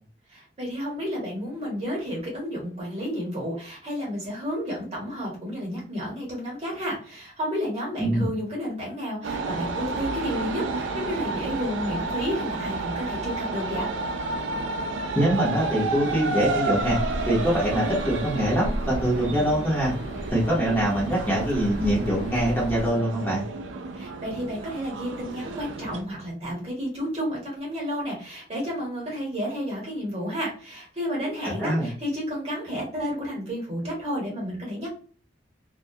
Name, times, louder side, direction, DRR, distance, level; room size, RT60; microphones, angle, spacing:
voice 1, 0.3-13.9 23.9-35.0, equal, 35° right, -3 dB, 1.0 m, -31 dB
sound 1, 9.2-26.0, right 3 dB, 90° right, 0.4 m, -31 dB
voice 2, 15.1-17.0 17.3-19.9 20.3-23.4 31.4-31.9, equal, 10° left, -6 dB, 0.8 m, -24 dB
sound 2, 16.8-22.9, equal, 40° left, 0.4 m, -35 dB
2.2 x 2.1 x 2.6 m, 0.41 s
head